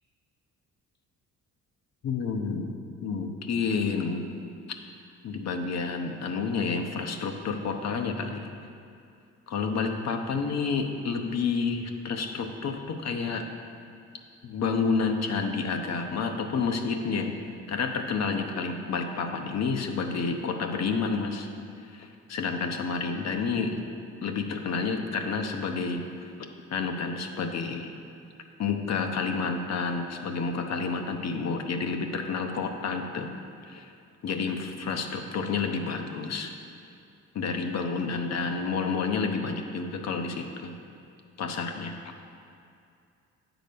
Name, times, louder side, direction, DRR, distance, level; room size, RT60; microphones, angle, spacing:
voice 1, 2.0-2.7 3.0-4.2 5.2-8.5 9.5-13.5 14.4-17.3 17.7-21.5 21.8-23.8 24.2-26.1 26.7-27.9 28.6-33.3 33.7-33.9 34.2-36.5 37.3-40.7 41.4-41.9, left 5 dB, 60° left, 5 dB, 0.9 m, -29 dB
9.1 x 4.0 x 6.8 m, 2.5 s
cardioid pair, 90°, 30 cm